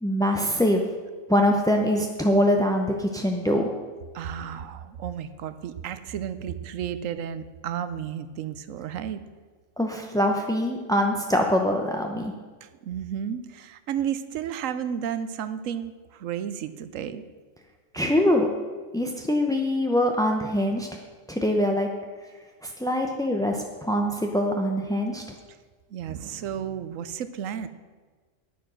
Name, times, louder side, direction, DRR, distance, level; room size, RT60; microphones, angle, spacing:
voice 1, 0.0-0.8 1.3-3.7 9.8-12.3 17.9-18.5 18.9-20.9 21.3-21.9 22.6-25.2, equal, 5° left, 2 dB, 0.4 m, -23 dB
voice 2, 4.1-9.2 12.6-17.2 19.0-19.1 25.9-27.7, right 9 dB, 90° right, 13 dB, 1.1 m, -32 dB
9.5 x 9.2 x 6.2 m, 1.4 s
omnidirectional pair, 1.3 m